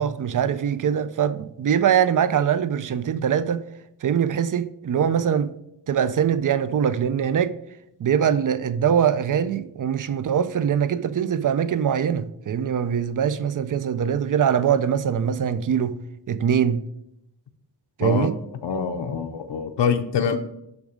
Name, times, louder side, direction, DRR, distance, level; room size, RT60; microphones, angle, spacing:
voice 1, 0.0-3.6 4.0-5.5 5.9-7.5 8.0-15.9 16.3-16.8 18.0-18.3, right 8 dB, 50° right, 0.5 m, -22 dB
voice 2, 18.6-20.4, left 6 dB, 80° left, 0.7 m, -24 dB
7.0 x 6.1 x 5.0 m
wide cardioid pair, 175°, 42 cm